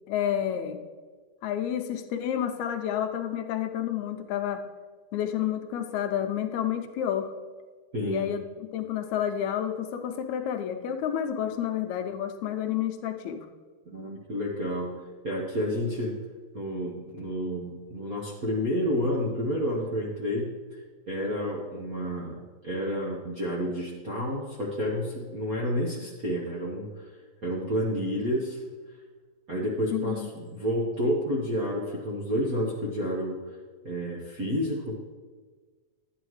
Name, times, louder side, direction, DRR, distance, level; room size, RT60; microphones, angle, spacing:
voice 1, 0.1-0.8 1.4-4.6 5.1-7.3 8.1-8.4 8.7-13.5 29.9-30.3, left 10 dB, 80° left, 6 dB, 1.9 m, -30 dB
voice 2, 7.9-8.3 13.9-14.9 15.2-16.1 16.5-20.8 21.1-22.4 22.6-27.1 27.4-28.6 29.5-33.4 33.8-34.9, equal, 60° right, -4 dB, 0.9 m, -30 dB
11.5 x 9.2 x 3.2 m, 1.4 s
omnidirectional pair, 3.3 m